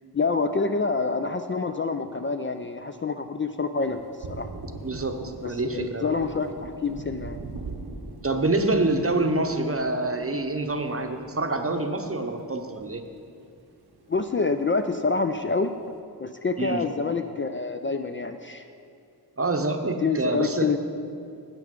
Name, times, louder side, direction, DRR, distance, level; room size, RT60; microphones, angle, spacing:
voice 1, 0.1-4.0 4.3-4.5 5.4-7.4 14.1-15.7 16.2-18.7 20.0-20.8, left 4 dB, 30° left, 7 dB, 0.4 m, -27 dB
Thunder, 3.8-13.5 13.8-15.0, right 3 dB, 70° right, 0.8 m, -42 dB
voice 2, 4.8-6.1 8.2-13.0 16.6-16.8 19.4-20.7, right 2 dB, 35° right, 5 dB, 0.8 m, -26 dB
9.8 x 7.9 x 5.1 m, 2.4 s
wide cardioid pair, 55°, 40 cm